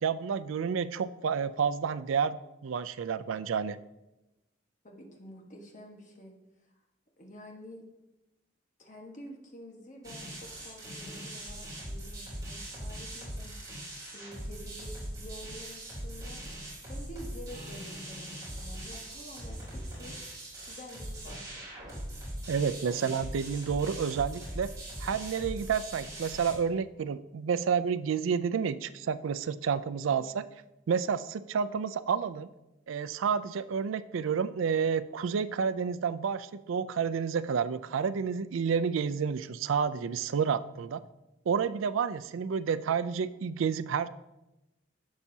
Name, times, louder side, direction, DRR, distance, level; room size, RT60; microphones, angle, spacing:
voice 1, 0.0-3.8 22.5-24.7 25.0-30.4 30.9-32.5 32.9-41.0 41.5-44.1, right 6 dB, 90° right, 13 dB, 0.4 m, -30 dB
voice 2, 4.8-6.3 7.2-7.8 8.8-13.5 14.1-16.4 16.9-20.2 20.7-21.9 22.8-23.0, equal, 40° left, 1 dB, 1.3 m, -49 dB
sound 1, 10.0-26.5, right 1 dB, 20° right, 3.2 m, -41 dB
11.5 x 7.2 x 2.7 m, 0.97 s
head